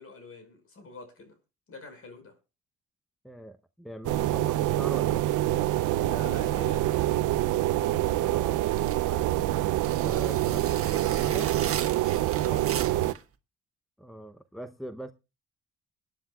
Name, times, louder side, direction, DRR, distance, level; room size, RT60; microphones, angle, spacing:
voice 1, 0.0-1.4 1.7-2.4 6.0-7.3 7.8-8.1 12.3-13.0, left 3 dB, 50° left, 5.4 m, -45 dB
voice 2, 3.2-5.3 8.2-8.6 9.0-9.6 10.0-11.5 14.0-15.1, equal, ahead, 0.8 m, -42 dB
sound 1, 4.0-13.1, right 14 dB, 85° right, 0.6 m, -26 dB
sound 2, 8.7-13.2, right 8 dB, 45° right, 1.4 m, -38 dB
22.5 x 10.0 x 2.3 m
cardioid pair, 90°, 30 cm